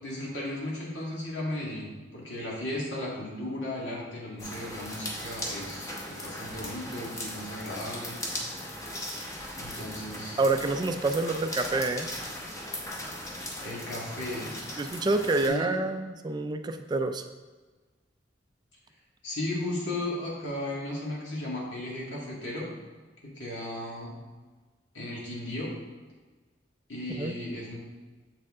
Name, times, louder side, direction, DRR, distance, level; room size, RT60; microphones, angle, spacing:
voice 1, 0.0-8.2 9.5-10.4 13.6-14.6 15.5-15.8 19.2-22.7 23.2-24.1 24.9-25.7 26.9-27.8, left 1 dB, 85° left, -5 dB, 2.0 m, -35 dB
sound 1, 4.4-15.5, left 1 dB, 20° left, 0.9 m, -38 dB
voice 2, 10.4-12.1 14.8-17.2 27.2-27.4, right 3 dB, 25° right, 8 dB, 0.3 m, -27 dB
7.1 x 4.6 x 3.7 m, 1.3 s
head